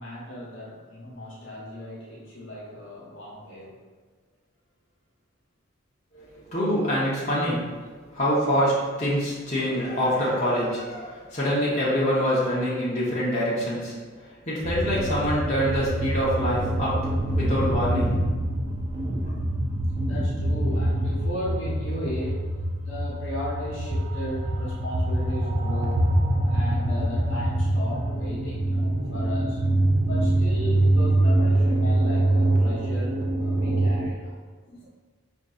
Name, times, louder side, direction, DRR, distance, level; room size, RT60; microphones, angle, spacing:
voice 1, 0.0-3.8 20.0-22.4 22.8-26.1 26.5-29.6 30.1-34.4 34.7-34.9, left 1 dB, 70° left, -5 dB, 0.9 m, -36 dB
voice 2, 6.1-7.8 8.1-14.0 14.5-17.0 17.4-18.1 19.1-19.2, equal, 35° left, -8 dB, 0.7 m, -25 dB
sound 1, 14.6-34.1, right 1 dB, 35° right, 0.3 m, -24 dB
5.0 x 2.6 x 2.3 m, 1.4 s
head